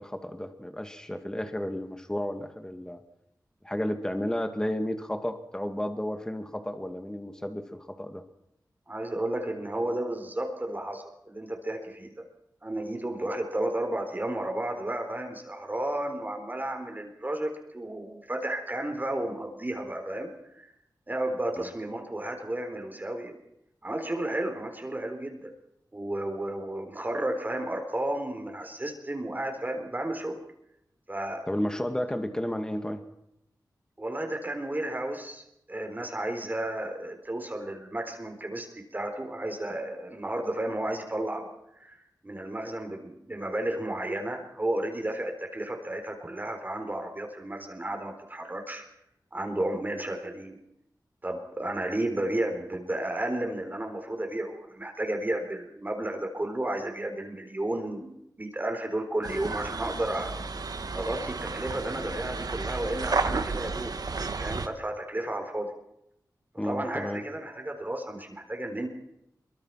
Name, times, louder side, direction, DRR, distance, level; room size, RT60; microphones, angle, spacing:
voice 1, 0.0-3.0 3.6-8.2 21.6-21.7 31.5-33.0 66.6-67.2, left 1 dB, 10° left, 7 dB, 2.2 m, -32 dB
voice 2, 8.9-12.2 12.6-20.7 21.1-23.4 23.8-25.5 25.9-30.4 31.1-31.5 34.0-35.4 35.7-41.5 41.8-48.9 49.3-50.6 51.2-60.3 60.9-65.7 66.6-68.9, right 1 dB, 25° right, 4 dB, 4.0 m, -33 dB
sound 1, 59.2-64.7, right 4 dB, 65° right, 1.8 m, -32 dB
24.0 x 23.5 x 5.9 m, 0.79 s
wide cardioid pair, 85°, 7 cm